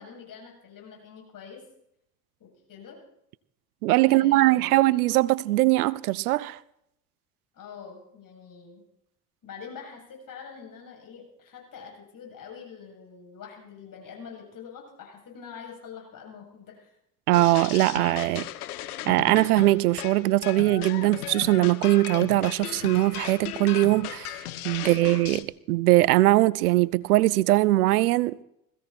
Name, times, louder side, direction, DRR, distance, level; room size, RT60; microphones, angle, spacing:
voice 1, 0.0-1.6 2.4-3.0 4.0-4.7 7.5-8.8 9.4-16.9 24.7-25.1, left 6 dB, 45° left, 7.8 m, -45 dB
voice 2, 3.8-6.6 17.3-18.5 19.0-24.4 24.6-28.4, right 17 dB, 80° right, 0.6 m, -21 dB
sound 1, 17.3-25.4, left 13 dB, 80° left, 1.0 m, -37 dB
20.5 x 16.0 x 4.4 m
hypercardioid pair, 60°, 44 cm